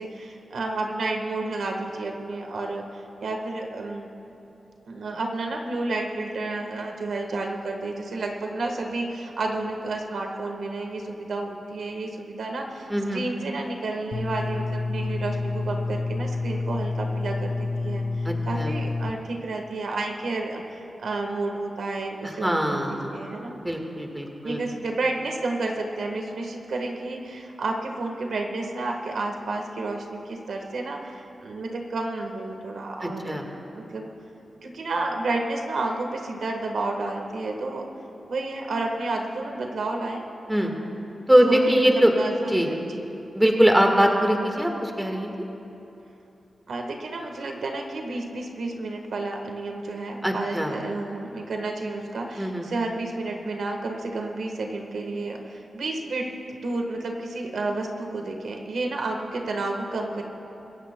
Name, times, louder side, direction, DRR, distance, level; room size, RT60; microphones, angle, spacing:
voice 1, 0.0-4.1 4.9-23.6 24.4-33.4 33.7-34.1 34.6-37.9 38.3-40.2 41.5-43.1 46.7-60.2, right 2 dB, 85° right, 2 dB, 1.3 m, -31 dB
voice 2, 12.9-13.2 18.2-18.7 22.2-23.2 23.6-24.6 33.0-33.4 40.5-40.8 41.3-42.1 42.5-42.7 43.3-45.3 50.2-50.7 52.4-52.6, equal, 10° right, 2 dB, 1.5 m, -22 dB
sound 1, 14.1-19.1, left 3 dB, 70° left, 0.9 m, -28 dB
24.0 x 15.0 x 2.2 m, 3.0 s
wide cardioid pair, 90°, 0 cm